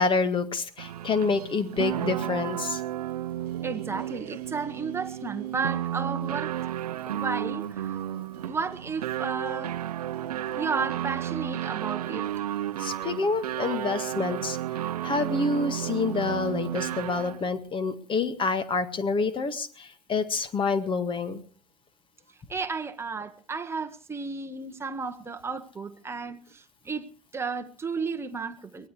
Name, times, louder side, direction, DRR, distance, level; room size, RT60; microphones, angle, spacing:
voice 1, 0.0-2.8 12.8-14.6 15.0-21.4, left 4 dB, 25° left, 1.9 m, -27 dB
sound 1, 0.8-17.5, right 12 dB, 70° right, 0.8 m, -32 dB
voice 2, 3.6-6.7 7.1-8.0 8.4-9.8 10.6-12.4 22.5-27.1 27.3-28.9, right 4 dB, 10° right, 1.3 m, -33 dB
23.0 x 18.0 x 3.2 m
figure-of-eight pair, 85°, 20 cm